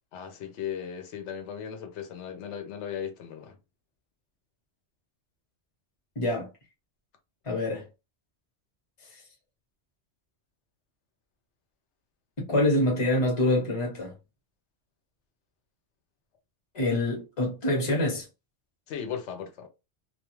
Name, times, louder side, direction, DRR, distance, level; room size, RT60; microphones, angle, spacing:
voice 1, 0.1-3.6 18.9-19.7, left 8 dB, 80° left, 1.0 m, -37 dB
voice 2, 6.2-6.5 7.4-7.8 12.4-14.1 16.7-18.3, left 1 dB, 30° left, 0.8 m, -26 dB
2.3 x 2.3 x 3.0 m
omnidirectional pair, 1.2 m